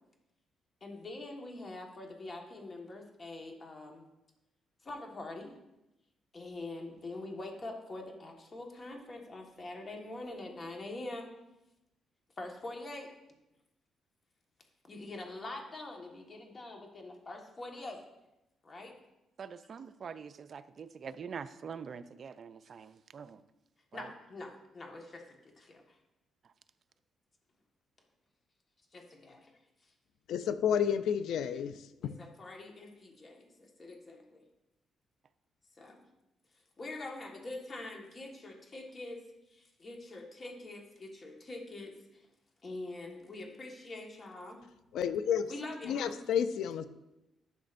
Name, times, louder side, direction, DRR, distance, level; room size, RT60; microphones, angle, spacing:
voice 1, 0.8-4.0 4.8-5.5 6.3-11.3 12.4-13.1 14.9-18.0 18.6-18.9 23.9-26.0 28.9-29.5 32.0-34.4 35.8-36.0 36.8-39.2 39.5-42.3 42.6-44.6 45.5-46.2, left 2 dB, 35° left, 2 dB, 1.5 m, -44 dB
voice 2, 19.4-23.4 23.9-24.1 26.4-26.5, right 6 dB, 50° right, 12 dB, 0.4 m, -45 dB
voice 3, 30.3-31.7 32.0-32.1 44.9-45.5 45.8-46.9, left 8 dB, 80° left, 12 dB, 0.5 m, -30 dB
12.0 x 6.1 x 2.6 m, 0.93 s
cardioid pair, 90°, 0 cm